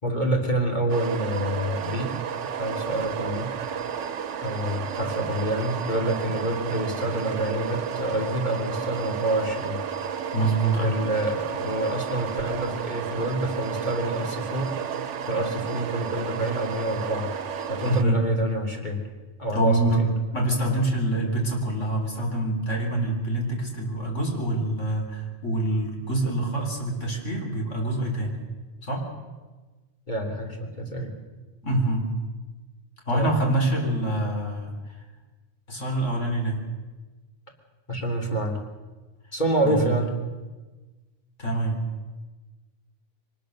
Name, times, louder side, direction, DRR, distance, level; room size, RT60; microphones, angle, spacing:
voice 1, 0.0-2.1 2.6-3.7 4.4-9.8 10.8-14.7 15.3-17.3 17.7-19.0 19.4-20.1 30.1-31.1 33.1-33.4 37.9-38.6 39.3-40.1, right 1 dB, 40° left, 1 dB, 3.4 m, -27 dB
sound 1, 0.9-18.0, right 7 dB, 75° right, 1.1 m, -32 dB
voice 2, 10.3-11.0 17.8-18.2 19.5-20.0 20.3-28.4 28.8-29.1 31.6-32.1 33.1-34.7 35.7-36.6 39.6-39.9 41.4-41.8, right 1 dB, 80° left, 1 dB, 4.4 m, -25 dB
23.5 x 20.0 x 6.6 m, 1.3 s
omnidirectional pair, 1.3 m